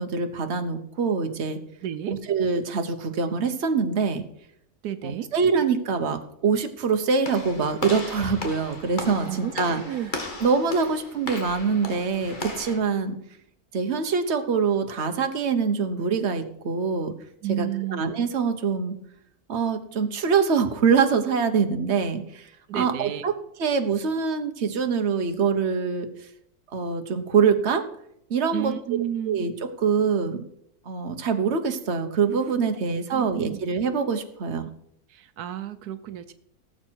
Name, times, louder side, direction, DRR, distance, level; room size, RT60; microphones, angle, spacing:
voice 1, 0.0-1.6 2.1-4.2 5.0-9.8 10.4-13.2 13.7-17.1 17.5-19.0 19.5-22.5 22.7-23.3 23.6-26.1 26.7-27.8 28.3-28.7 29.2-30.4 30.9-34.7, right 5 dB, 50° right, 7 dB, 1.3 m, -24 dB
voice 2, 1.8-2.2 4.8-5.3 9.3-10.1 17.4-18.0 22.7-23.2 28.5-29.4 33.1-33.6 35.1-36.3, right 11 dB, 85° right, 11 dB, 1.2 m, -32 dB
Walk footsteps / Slam, 7.2-12.8, left 2 dB, 30° left, 1.9 m, -35 dB
18.0 x 7.6 x 4.6 m, 0.76 s
omnidirectional pair, 1.6 m